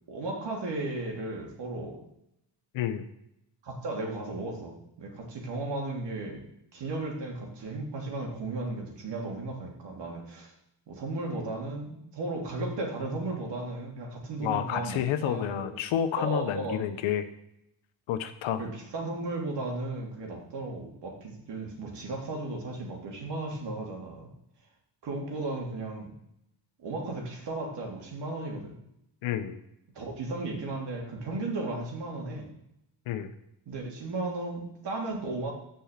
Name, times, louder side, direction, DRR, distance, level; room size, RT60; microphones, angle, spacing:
voice 1, 0.1-2.0 3.6-10.5 10.9-15.8 16.2-16.8 18.6-24.3 25.0-26.1 26.8-28.7 29.9-32.5 33.7-35.5, right 2 dB, 60° right, 0 dB, 2.9 m, -35 dB
voice 2, 14.4-17.3 18.1-18.6 29.2-29.6 33.1-33.3, left 10 dB, 80° left, 9 dB, 1.0 m, -29 dB
7.2 x 5.5 x 7.3 m, 0.82 s
cardioid pair, 80°, 46 cm